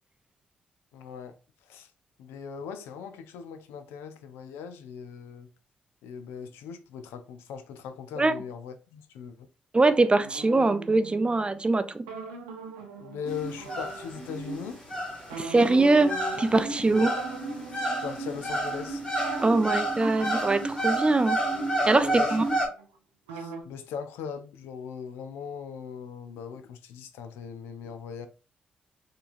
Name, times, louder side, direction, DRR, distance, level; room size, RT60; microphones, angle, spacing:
voice 1, 0.9-1.3 1.7-1.9 2.2-5.5 6.0-9.5 13.0-14.8 16.9-17.2 17.9-19.0 22.0-22.4 23.3-28.3, left 7 dB, 70° left, 0.4 m, -39 dB
voice 2, 9.7-12.0 15.4-16.1 16.4-17.1 19.4-21.4 21.9-22.4, right 3 dB, 25° right, 0.5 m, -22 dB
sound 1, 10.2-14.8 15.3-23.0 23.3-23.6, right 3 dB, 85° right, 0.6 m, -42 dB
sound 2, 13.2-22.7, right 1 dB, 25° left, 2.2 m, -30 dB
4.5 x 3.0 x 2.5 m
hypercardioid pair, 40°, 4 cm